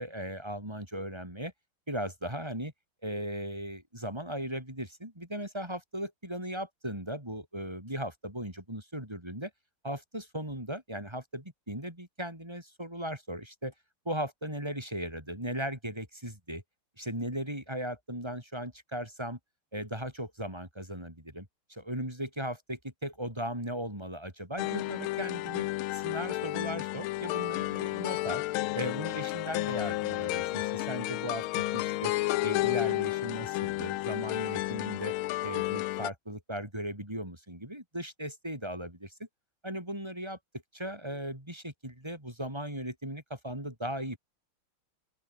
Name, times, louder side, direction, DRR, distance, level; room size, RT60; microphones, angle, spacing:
voice 1, 0.0-1.5 1.9-2.7 3.0-9.5 9.8-13.7 14.1-16.6 17.0-19.4 19.7-25.7 25.9-28.4 28.7-31.4 32.0-32.1 32.4-35.2 35.4-39.3 39.6-40.4 40.7-44.2, equal, 10° right, 5.4 m, -37 dB
sound 1, 24.6-36.1, left 18 dB, 80° left, 1.3 m, -32 dB
open air
omnidirectional pair, 2.4 m